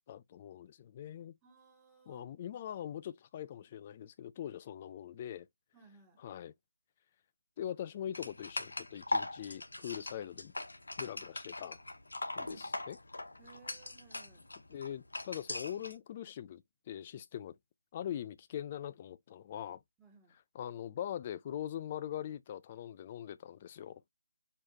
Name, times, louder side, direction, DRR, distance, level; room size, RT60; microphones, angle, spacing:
voice 1, 0.0-1.3 2.1-5.5 6.2-6.5 7.6-10.5 11.0-11.8 12.4-13.0 14.7-17.5 17.9-19.8 20.5-24.0, left 10 dB, 30° left, 0.4 m, -42 dB
voice 2, 1.4-2.3 5.7-6.2 12.4-12.7 13.4-14.5 20.0-20.4, right 5 dB, 10° right, 1.0 m, -60 dB
sound 1, 8.1-15.9, left 2 dB, 80° left, 0.8 m, -41 dB
4.6 x 2.1 x 3.5 m
figure-of-eight pair, 155°, 0 cm